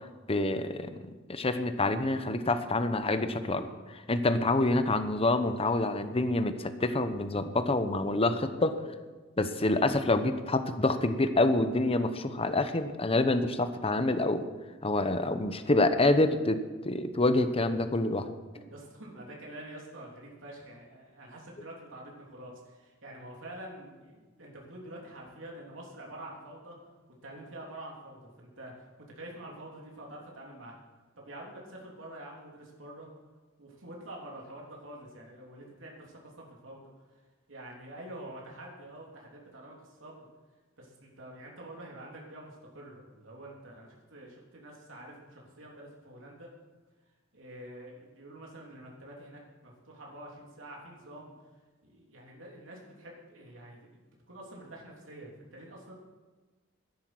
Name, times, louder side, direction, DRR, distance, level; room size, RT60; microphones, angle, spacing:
voice 1, 0.3-9.0 9.4-14.4 14.8-16.6 16.8-18.3, left 2 dB, 30° left, 10 dB, 1.0 m, -27 dB
voice 2, 18.5-26.8 27.2-28.7 29.1-30.7 31.1-33.1 33.6-36.8 37.5-40.3 40.8-46.5 47.3-51.3 51.8-53.9 54.3-55.9, right 1 dB, 80° right, -2 dB, 3.2 m, -47 dB
12.5 x 10.5 x 7.8 m, 1.3 s
head